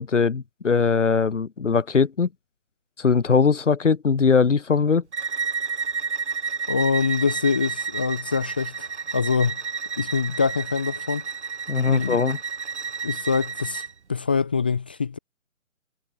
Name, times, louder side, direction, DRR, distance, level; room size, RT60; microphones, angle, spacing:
voice 1, 0.0-2.3 3.0-5.0 11.7-12.4, left 5 dB, 55° left, 6.3 m, -20 dB
Bowed string instrument, 5.1-13.9, right 6 dB, 50° right, 7.1 m, -31 dB
voice 2, 6.7-9.6 10.0-11.2 11.9-12.2 13.0-13.8 14.1-15.2, left 5 dB, 5° left, 0.7 m, -24 dB
figure-of-eight pair, 155°, 42 cm